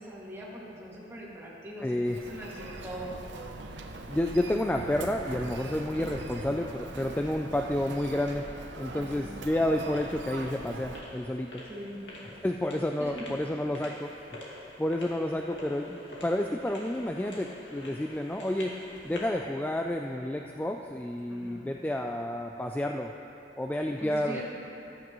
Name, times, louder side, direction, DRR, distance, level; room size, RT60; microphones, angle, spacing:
voice 1, 0.0-3.2 8.9-9.3 11.7-12.0 13.0-13.1 21.3-21.7 24.0-24.4, equal, 15° right, -6 dB, 2.1 m, -42 dB
voice 2, 1.8-2.2 4.1-8.5 8.8-11.6 12.4-14.1 14.8-18.8 19.0-23.1 23.6-24.4, left 1 dB, 10° left, 3 dB, 0.3 m, -30 dB
Human voice, 2.1-11.0, right 2 dB, 80° right, 0.8 m, -41 dB
sound 1, 9.3-19.4, left 1 dB, 90° left, 2.1 m, -46 dB
14.0 x 13.0 x 3.1 m, 2.9 s
head